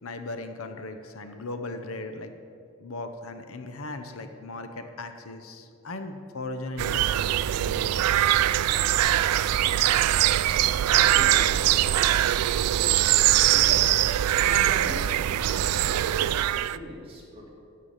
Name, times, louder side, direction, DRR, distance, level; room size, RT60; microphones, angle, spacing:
voice 1, 0.0-2.3 2.8-7.9 8.5-8.6, left 2 dB, 65° left, 7 dB, 0.8 m, -37 dB
sound 1, 6.8-16.8, right 12 dB, 85° right, 0.3 m, -22 dB
voice 2, 11.1-12.3 13.4-14.0 14.4-17.5, equal, 25° right, -3 dB, 2.3 m, -41 dB
13.5 x 4.8 x 8.8 m, 2.5 s
head